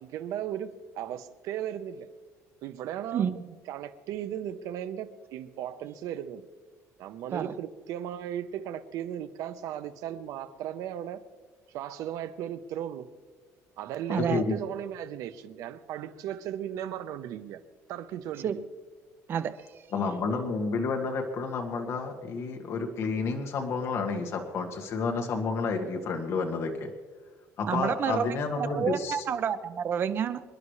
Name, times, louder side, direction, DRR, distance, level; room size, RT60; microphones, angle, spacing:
voice 1, 0.0-2.1 2.6-3.3 3.7-6.5 7.0-11.2 11.7-13.1 13.8-17.6 17.9-18.6, right 10 dB, 65° right, 11 dB, 1.0 m, -36 dB
voice 2, 3.1-3.5 7.3-7.5 14.1-14.4 18.4-18.5 19.3-19.5 27.7-30.4, right 8 dB, 35° right, 11 dB, 0.7 m, -29 dB
voice 3, 14.1-14.6 19.9-26.9 27.6-29.2, left 4 dB, 45° left, 3 dB, 1.8 m, -30 dB
27.0 x 11.0 x 3.3 m, 1.5 s
cardioid pair, 160°, 6 cm